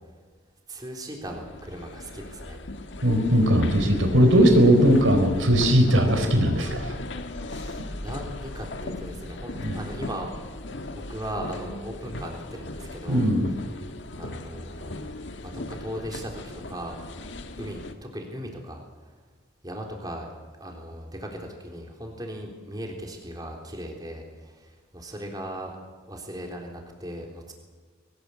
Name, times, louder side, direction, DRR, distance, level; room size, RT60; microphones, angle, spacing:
voice 1, 0.7-2.6 7.5-10.3 10.9-13.2 14.2-15.1 15.4-17.0 17.6-18.8 19.6-20.3 20.6-25.8 26.1-27.5, equal, 20° right, 1 dB, 3.6 m, -38 dB
sound 1, 1.3-17.9, left 2 dB, 70° left, 1.6 m, -37 dB
voice 2, 3.0-6.9 9.6-9.8 13.1-13.5, equal, 90° right, 6 dB, 4.2 m, -19 dB
22.0 x 19.5 x 8.5 m, 1.5 s
head